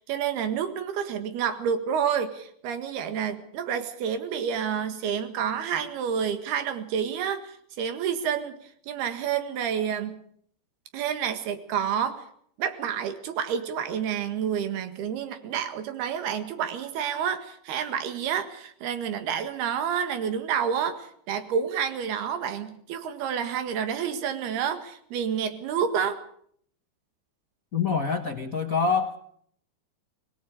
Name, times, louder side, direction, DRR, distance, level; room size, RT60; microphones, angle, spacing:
voice 1, 0.0-8.6 8.9-10.2 10.9-12.2 12.6-26.2, right 8 dB, 85° right, 9 dB, 3.8 m, -29 dB
voice 2, 27.7-29.2, left 5 dB, 75° left, 5 dB, 0.7 m, -25 dB
27.0 x 19.5 x 5.0 m, 0.64 s
omnidirectional pair, 4.4 m